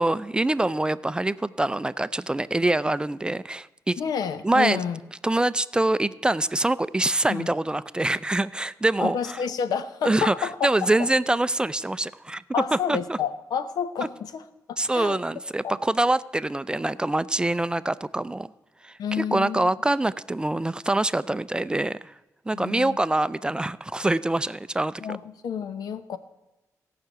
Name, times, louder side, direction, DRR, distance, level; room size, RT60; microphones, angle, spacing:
voice 1, 0.0-4.0 4.4-4.8 5.2-9.4 10.0-12.4 12.9-13.2 14.8-18.5 18.8-22.1 22.5-25.2, right 2 dB, 15° right, 16 dB, 0.4 m, -25 dB
voice 2, 4.0-5.0 7.3-7.5 9.0-11.1 12.5-14.4 14.9-15.2 15.6-15.8 19.0-19.6 22.5-23.0 25.0-26.2, left 7 dB, 85° left, 12 dB, 0.9 m, -29 dB
17.5 x 5.9 x 7.9 m, 1.0 s
cardioid pair, 100°, 6 cm